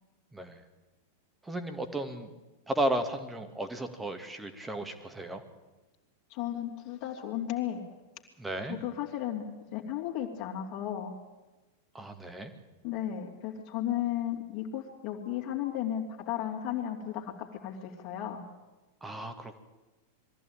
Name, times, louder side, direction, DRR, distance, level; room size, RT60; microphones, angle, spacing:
voice 1, 1.4-2.3 2.7-5.4 8.4-8.8 11.9-12.5 19.0-19.6, right 1 dB, 10° right, 7 dB, 2.3 m, -34 dB
voice 2, 6.3-7.8 8.6-9.4 9.7-11.1 12.8-18.4, left 11 dB, 40° left, 1 dB, 3.2 m, -34 dB
22.5 x 15.0 x 9.1 m, 1.1 s
figure-of-eight pair, 90°, 0 cm